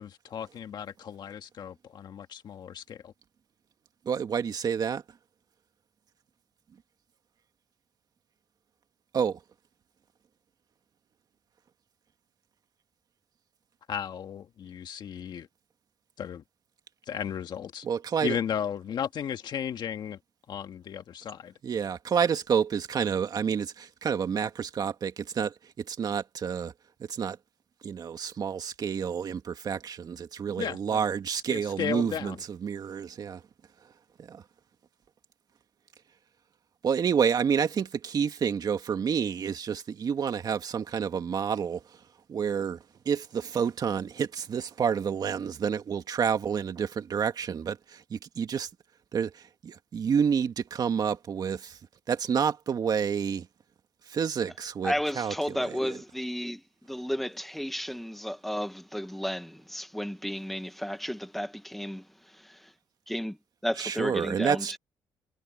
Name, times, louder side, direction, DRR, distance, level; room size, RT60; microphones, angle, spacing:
voice 1, 0.0-3.1 13.9-15.5 16.2-16.4 17.1-17.9 18.2-20.2 20.5-21.5 30.6-31.0 31.3-32.4, left 8 dB, 60° left, 1.7 m, -35 dB
voice 2, 4.1-5.0 9.1-9.4 17.8-18.4 21.6-26.7 27.0-27.4 27.8-33.4 34.3-34.4 36.8-41.8 42.3-48.7 49.1-51.8 52.1-53.5 54.1-55.9 63.8-64.8, right 7 dB, 50° right, 2.2 m, -29 dB
voice 3, 54.8-62.7 63.1-63.4 63.6-64.8, equal, ahead, 1.4 m, -33 dB
cardioid pair, 95°, 8 cm